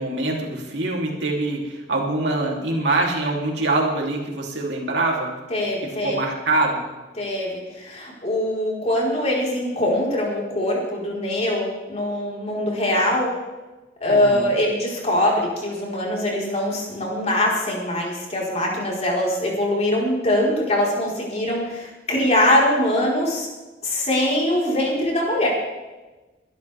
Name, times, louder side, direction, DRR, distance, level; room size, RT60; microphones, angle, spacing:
voice 1, 0.0-5.4 5.8-6.9 14.1-14.5, right 2 dB, 70° right, -1 dB, 3.4 m, -24 dB
voice 2, 5.5-6.2 7.2-13.3 14.0-23.5 23.8-25.5, left 1 dB, 35° left, -3 dB, 4.7 m, -22 dB
22.5 x 13.0 x 3.6 m, 1.2 s
head